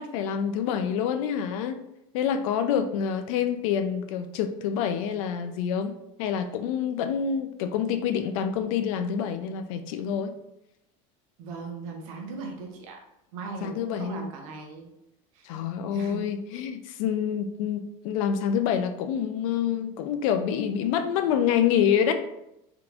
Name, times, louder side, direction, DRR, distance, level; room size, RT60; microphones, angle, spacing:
voice 1, 0.0-1.8 2.1-10.3 13.6-14.3 15.4-22.1, left 8 dB, 75° left, 9 dB, 0.4 m, -27 dB
voice 2, 11.4-13.0 13.3-14.9 15.3-15.5 15.9-16.2, right 4 dB, 80° right, 2 dB, 0.8 m, -38 dB
3.6 x 2.9 x 2.5 m, 0.84 s
supercardioid pair, 120°, 17 cm